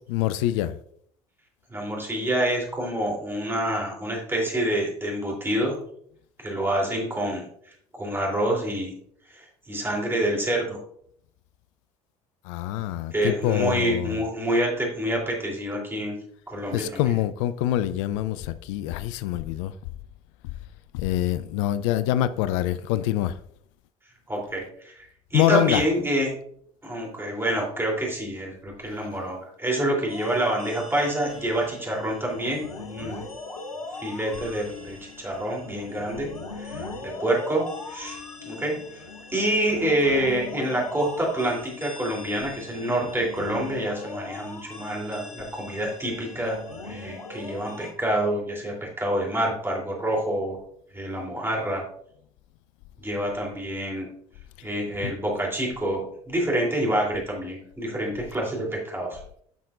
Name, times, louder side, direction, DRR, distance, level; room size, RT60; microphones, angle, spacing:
voice 1, 0.1-0.8 12.4-14.2 16.7-19.7 20.9-23.4 25.3-25.8 55.0-55.1, left 12 dB, 60° left, 0.4 m, -25 dB
voice 2, 1.7-5.8 6.4-7.5 7.9-8.9 9.3-10.8 13.1-16.2 16.5-17.0 24.3-26.3 26.8-33.2 34.0-36.3 36.6-38.2 38.4-39.0 39.3-50.6 50.9-51.8 53.0-54.1 54.6-59.2, right 1 dB, 15° right, 3.1 m, -27 dB
sound 1, 30.1-47.9, left 3 dB, 85° left, 0.9 m, -39 dB
10.5 x 5.8 x 2.5 m
figure-of-eight pair, 60°, 18 cm